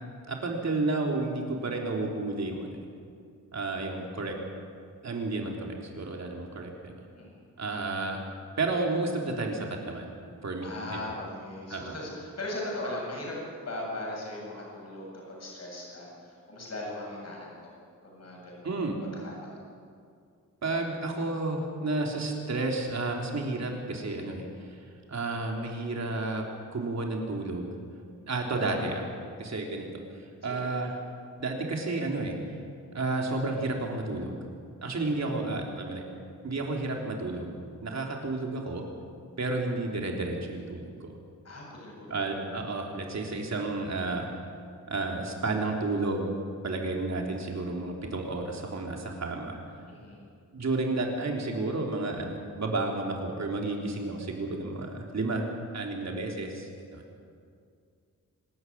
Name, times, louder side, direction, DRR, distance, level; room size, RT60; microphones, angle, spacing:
voice 1, 0.3-2.8 3.5-4.4 5.0-6.9 7.6-8.2 8.6-10.1 10.4-11.0 11.7-11.9 18.6-19.0 20.6-24.5 25.1-26.4 26.7-27.7 28.3-29.0 29.4-29.9 30.4-30.9 31.4-32.4 32.9-34.4 34.8-36.0 36.4-37.5 37.8-38.8 39.4-41.1 42.1-44.3 44.9-46.3 46.6-49.6 50.5-55.5 55.7-57.0, right 2 dB, 55° right, 1 dB, 3.6 m, -31 dB
voice 2, 10.6-13.4 13.6-17.7 18.0-19.6 28.6-29.0 30.4-30.7 41.4-42.6 49.9-50.2, left 1 dB, 50° left, -3 dB, 7.9 m, -39 dB
25.0 x 13.5 x 9.6 m, 2.3 s
wide cardioid pair, 145°, 32 cm